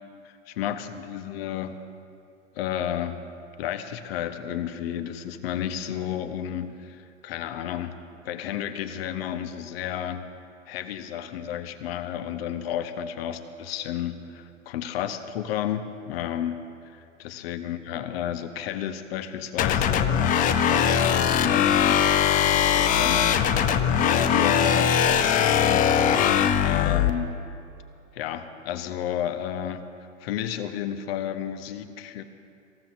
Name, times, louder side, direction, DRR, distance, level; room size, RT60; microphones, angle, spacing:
voice 1, 0.2-1.8 2.5-3.2 3.6-7.9 8.2-10.2 10.7-16.6 16.9-23.5 24.0-26.1 26.6-27.3 28.1-29.9 30.2-32.2, left 10 dB, 50° left, 9 dB, 1.1 m, -32 dB
sound 1, 19.6-27.1, left 8 dB, 20° left, 0.6 m, -21 dB
25.0 x 15.0 x 2.7 m, 2.5 s
figure-of-eight pair, 105°, 38 cm